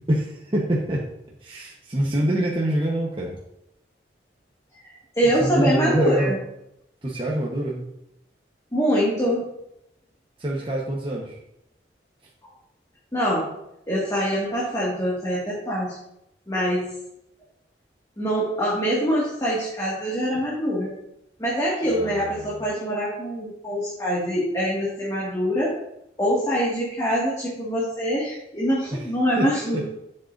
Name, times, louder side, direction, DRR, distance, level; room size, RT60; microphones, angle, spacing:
voice 1, 0.1-1.0 1.4-3.4 5.4-6.3 7.0-7.8 10.4-11.4 21.8-22.6 28.9-29.0 29.4-29.5 29.7-29.8, right 1 dB, 30° right, -4 dB, 1.2 m, -25 dB
voice 2, 5.2-6.4 8.7-9.5 13.1-13.5 13.9-16.0 16.5-16.9 18.2-20.9 21.4-25.7 26.2-29.8, equal, 20° left, -6 dB, 2.0 m, -24 dB
11.0 x 7.7 x 2.7 m, 0.81 s
head